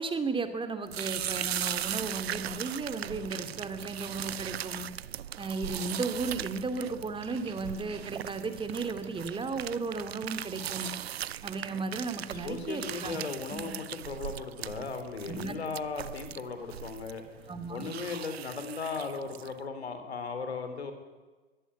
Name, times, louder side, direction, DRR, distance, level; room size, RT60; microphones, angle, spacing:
voice 1, 0.0-4.9 5.4-10.9 11.4-13.2 13.5-13.7 15.3-15.6 17.5-17.9, right 3 dB, 15° right, 9 dB, 2.7 m, -35 dB
sound 1, 0.9-19.6, right 11 dB, 70° right, 0.8 m, -39 dB
voice 2, 12.4-17.2 17.7-20.9, left 4 dB, 75° left, 8 dB, 3.8 m, -37 dB
23.5 x 18.5 x 9.3 m, 1.3 s
figure-of-eight pair, 85°, 32 cm